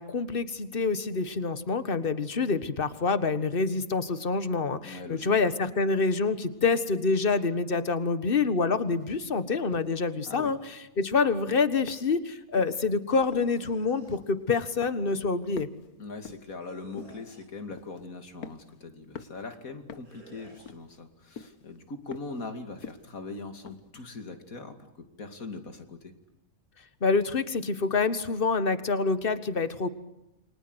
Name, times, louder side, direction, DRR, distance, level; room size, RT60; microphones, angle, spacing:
voice 1, 0.0-10.6 11.0-15.7 27.0-29.9, left 4 dB, 40° left, 13 dB, 1.7 m, -27 dB
voice 2, 4.8-5.3 10.3-10.6 16.0-26.1, left 3 dB, 70° left, 8 dB, 2.9 m, -41 dB
sound 1, 8.9-9.2 9.7-10.0 10.4-10.7 11.1-11.5 11.9-12.3 12.6-12.8 13.3-13.6 14.0-14.5 14.8-15.2 15.5-16.5 17.0-17.3 17.7-18.0 18.4-18.8 19.1-19.4 19.9-20.2 20.7-21.1 21.4-21.6 22.1-22.4 22.8-23.2 23.7-23.8, left 6 dB, 90° left, 1.8 m, -45 dB
sound 2, 13.1-14.2 16.6-17.6 20.0-20.7, right 2 dB, 85° right, 4.3 m, -53 dB
29.5 x 24.0 x 8.1 m, 0.89 s
omnidirectional pair, 1.5 m